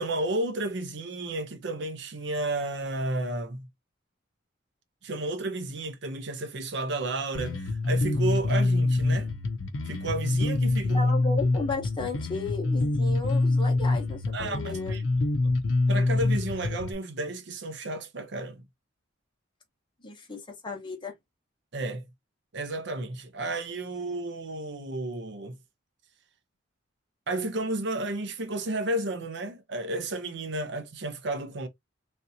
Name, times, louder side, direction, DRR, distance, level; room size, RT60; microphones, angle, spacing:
voice 1, 0.0-3.7 5.0-9.3 9.9-11.0 14.3-15.0 15.9-18.7 21.7-22.1 22.5-25.6 27.3-31.7, right 2 dB, 60° right, 0.6 m, -32 dB
Bass guitar, 7.3-16.9, left 2 dB, 75° left, 0.6 m, -25 dB
voice 2, 10.9-15.0 20.0-21.1, left 3 dB, 25° left, 0.9 m, -34 dB
3.5 x 2.7 x 2.6 m
head